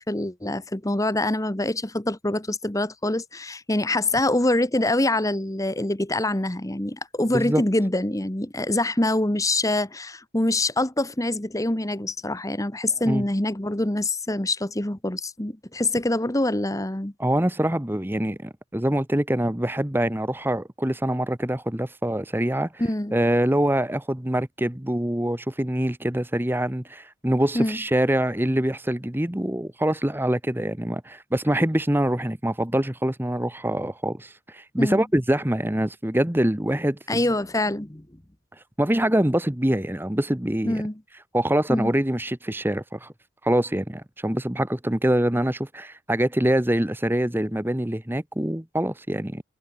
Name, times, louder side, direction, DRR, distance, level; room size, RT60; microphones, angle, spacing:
voice 1, 0.0-17.1 22.8-23.1 27.5-27.8 34.8-35.0 37.1-38.1 40.6-41.0 41.7-41.9, left 1 dB, 15° left, 1.2 m, -25 dB
voice 2, 17.2-22.7 23.1-37.0 38.8-40.8 41.3-43.1 43.4-49.4, right 1 dB, 10° right, 1.1 m, -24 dB
head